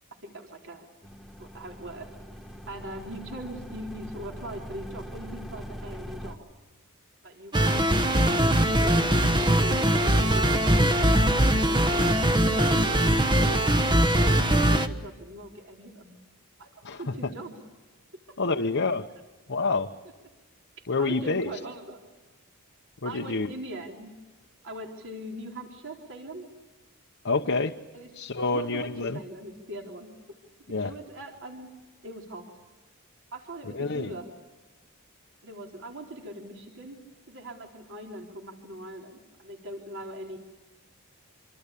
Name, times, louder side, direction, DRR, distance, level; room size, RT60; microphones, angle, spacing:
voice 1, 0.2-0.9 1.4-2.1 2.7-6.4 7.2-7.8 8.2-10.9 11.5-12.1 12.4-16.1 16.6-17.5 18.4-18.6 21.0-22.0 23.0-24.1 24.6-26.5 27.9-28.1 28.5-30.1 30.8-31.7 32.0-32.5 33.3-34.3 35.4-37.0 37.3-40.4, right 1 dB, 60° right, 2 dB, 4.0 m, -41 dB
sound 1, 1.0-6.3, equal, ahead, 1.3 m, -42 dB
sound 2, 7.5-14.9, right 1 dB, 20° right, 1.1 m, -21 dB
voice 2, 16.8-17.3 18.4-19.1 19.5-19.9 20.9-21.5 23.0-23.5 27.2-27.7 28.1-29.2 30.7-30.9 33.7-34.1, left 3 dB, 55° left, 3 dB, 1.0 m, -27 dB
26.0 x 25.0 x 8.5 m, 1.2 s
head